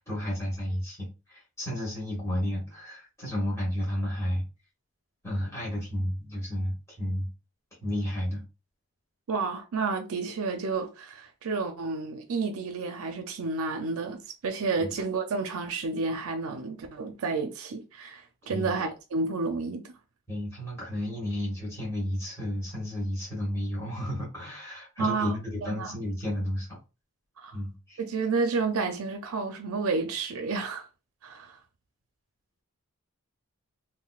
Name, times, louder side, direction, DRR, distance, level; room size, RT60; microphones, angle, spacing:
voice 1, 0.0-4.4 5.2-7.3 7.8-8.4 14.8-14.9 18.5-18.8 20.3-26.8 27.5-28.0, left 1 dB, 15° left, 1.7 m, -32 dB
voice 2, 9.3-19.9 25.0-25.3 25.6-26.0 27.4-27.6 28.1-30.9 31.2-31.6, right 4 dB, 80° right, 0.5 m, -31 dB
3.7 x 3.0 x 2.3 m
head